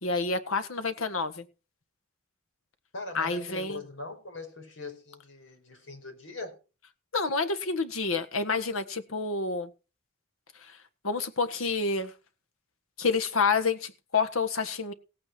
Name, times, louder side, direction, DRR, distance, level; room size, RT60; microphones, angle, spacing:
voice 1, 0.0-1.4 3.1-3.8 7.1-9.7 10.7-10.8 11.0-12.1 13.0-14.9, left 4 dB, 85° left, 1.6 m, -28 dB
voice 2, 2.9-6.6, left 3 dB, 65° left, 5.1 m, -41 dB
17.0 x 9.0 x 4.5 m
head